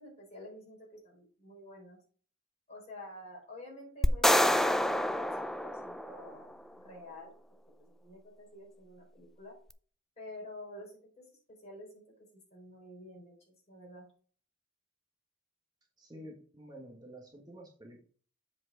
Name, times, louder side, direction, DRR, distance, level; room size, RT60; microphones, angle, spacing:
voice 1, 0.0-2.0 2.7-7.3 7.9-9.6 10.2-12.0 12.3-14.1, left 1 dB, 35° left, -2 dB, 4.3 m, -50 dB
sound 1, 4.0-6.4, left 1 dB, ahead, 0.3 m, -27 dB
voice 2, 16.0-18.0, right 1 dB, 20° right, -1 dB, 1.3 m, -50 dB
7.7 x 4.6 x 6.1 m, 0.43 s
head